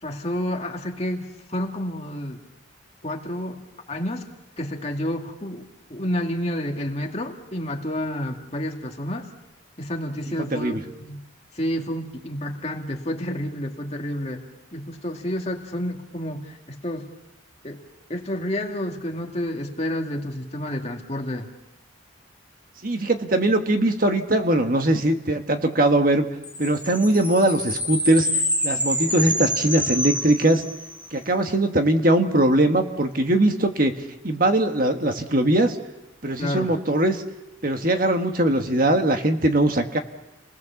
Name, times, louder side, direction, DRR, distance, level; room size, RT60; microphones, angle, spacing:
voice 1, 0.0-2.4 3.0-3.6 3.9-4.3 4.6-9.3 9.8-11.2 11.5-14.4 14.7-17.1 17.6-17.8 18.1-21.5 36.4-36.7, equal, 35° left, 2 dB, 2.3 m, -30 dB
voice 2, 10.4-10.8 22.8-26.3 26.6-28.3 28.6-30.6 31.1-33.9 34.2-35.8 36.2-37.2 37.6-40.0, right 1 dB, 45° right, 5 dB, 1.6 m, -21 dB
sound 1, 26.4-31.0, equal, 10° right, 2.6 m, -27 dB
29.5 x 20.0 x 7.2 m, 0.97 s
head